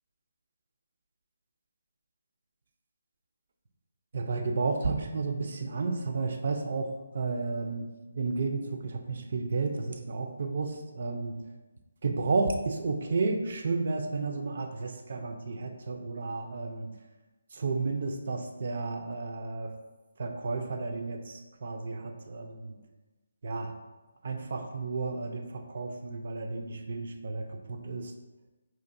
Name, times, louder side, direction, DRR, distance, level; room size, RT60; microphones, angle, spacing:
voice 1, 4.1-7.9 8.1-11.4 12.0-16.9 17.5-19.7 20.2-22.8 23.4-23.7 24.2-28.1, right 3 dB, 55° right, 5 dB, 0.4 m, -32 dB
4.4 x 2.5 x 2.5 m, 1.2 s
hypercardioid pair, 160°, 0 cm